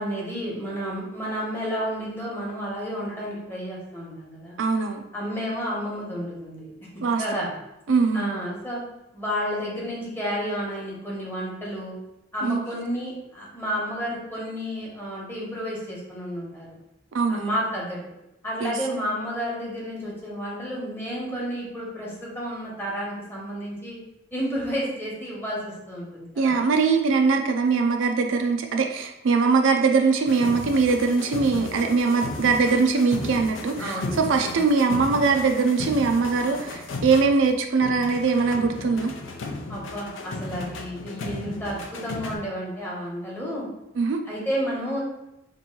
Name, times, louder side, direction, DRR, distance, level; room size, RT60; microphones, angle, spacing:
voice 1, 0.0-4.5 5.1-6.7 7.2-7.5 8.1-8.8 9.1-12.0 12.3-16.8 17.3-18.0 18.4-24.0 24.3-26.6 33.8-34.6 39.7-43.7 44.3-45.0, equal, 10° left, -4 dB, 1.0 m, -31 dB
voice 2, 4.6-5.0 7.0-7.4 7.9-8.3 12.4-12.6 17.1-17.5 18.6-18.7 26.4-39.1 44.0-44.2, right 4 dB, 75° right, 4 dB, 0.4 m, -22 dB
sound 1, 30.3-37.5 37.8-42.4, left 3 dB, 70° left, 0.5 m, -35 dB
2.9 x 2.6 x 4.4 m, 0.88 s
head